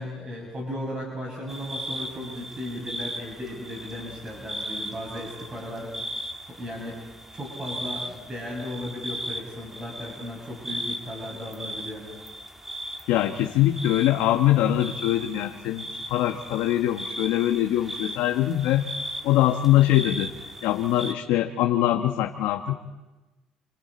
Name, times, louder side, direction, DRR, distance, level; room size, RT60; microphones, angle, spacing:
voice 1, 0.0-6.0 6.5-7.0 7.3-12.1, left 1 dB, 30° right, -2 dB, 6.8 m, -36 dB
sound 1, 1.5-21.1, right 1 dB, 10° right, 2.0 m, -37 dB
voice 2, 13.1-18.9 19.2-20.3 20.6-22.7, left 13 dB, 85° left, 4 dB, 1.2 m, -23 dB
30.0 x 27.0 x 4.4 m, 1.1 s
cardioid pair, 105°, 3 cm